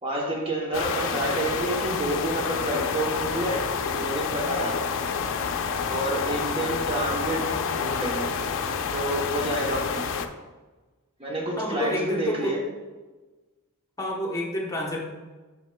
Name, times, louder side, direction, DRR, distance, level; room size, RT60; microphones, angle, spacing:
voice 1, 0.0-4.8 5.9-8.3 8.9-10.1 11.2-12.6, right 1 dB, 25° right, 0 dB, 0.8 m, -29 dB
sound 1, 0.7-10.3, left 6 dB, 60° left, 0.5 m, -28 dB
voice 2, 11.6-12.6 14.0-15.0, left 1 dB, 15° left, -1 dB, 1.0 m, -29 dB
7.7 x 6.7 x 2.2 m, 1.3 s
head